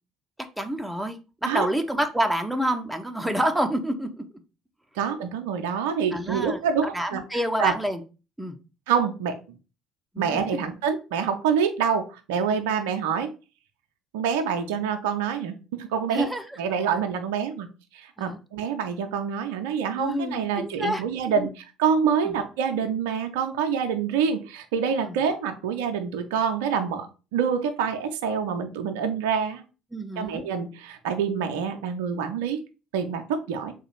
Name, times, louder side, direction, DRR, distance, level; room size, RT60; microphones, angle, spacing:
voice 1, 0.6-4.2 6.1-6.6 6.9-8.0 8.4-8.6 10.1-10.6 16.1-16.4 18.2-18.4 20.0-21.0 21.4-21.5 22.2-22.3 25.1-25.2 29.9-30.4, equal, 5° right, 5 dB, 0.6 m, -28 dB
voice 2, 5.0-7.2 7.6-7.7 8.9-9.4 10.2-13.3 14.1-16.3 16.6-17.7 17.9-27.1 27.3-29.6 30.2-32.6 32.9-33.7, right 7 dB, 65° right, 7 dB, 0.4 m, -26 dB
3.8 x 2.4 x 4.3 m, 0.32 s
figure-of-eight pair, 55°, 0 cm